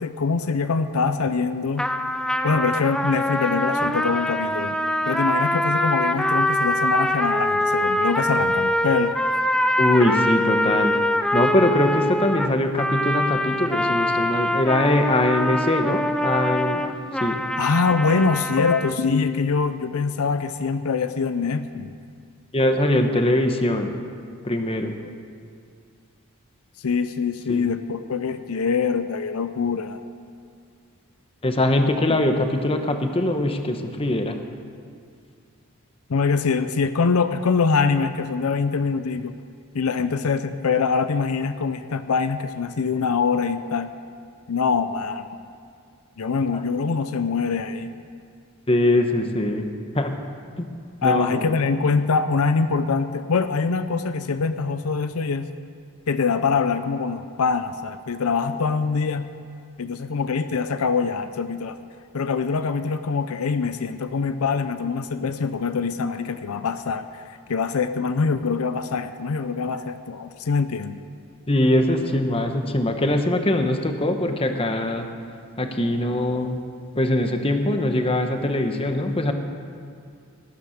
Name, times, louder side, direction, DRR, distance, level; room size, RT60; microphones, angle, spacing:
voice 1, 0.0-1.9 2.4-4.7 5.1-9.2 17.6-21.9 26.8-30.0 36.1-39.4 39.7-43.9 44.5-45.4 46.2-47.9 51.0-55.5 56.1-59.3 59.8-61.8 62.1-71.0, left 5 dB, 75° left, 10 dB, 0.6 m, -24 dB
sound 1, 1.8-18.9, left 1 dB, 5° left, 0.4 m, -24 dB
voice 2, 9.8-11.0 11.3-16.9 17.2-17.4 22.5-23.9 24.4-24.9 27.5-27.7 31.4-34.4 46.5-46.6 48.7-49.7 49.9-50.2 51.0-51.4 71.5-75.1 75.6-76.6 76.9-79.3, left 1 dB, 25° left, 5 dB, 1.0 m, -22 dB
18.0 x 10.5 x 6.5 m, 2.2 s
head